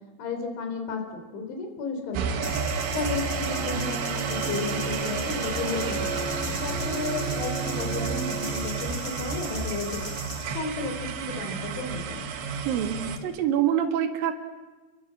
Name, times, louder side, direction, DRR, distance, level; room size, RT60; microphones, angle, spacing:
voice 1, 0.2-2.5 2.9-10.0 10.5-12.2, left 4 dB, 90° left, 5 dB, 5.7 m, -33 dB
sound 1, 2.1-13.2, right 5 dB, 85° right, 4.1 m, -32 dB
Bowed string instrument, 2.4-10.2, right 3 dB, 25° left, 6.2 m, -35 dB
sound 2, 2.4-10.6, right 1 dB, 10° right, 1.1 m, -38 dB
voice 2, 12.7-14.3, right 9 dB, 60° right, 4 dB, 3.3 m, -25 dB
29.5 x 23.0 x 7.6 m, 1.2 s
omnidirectional pair, 5.2 m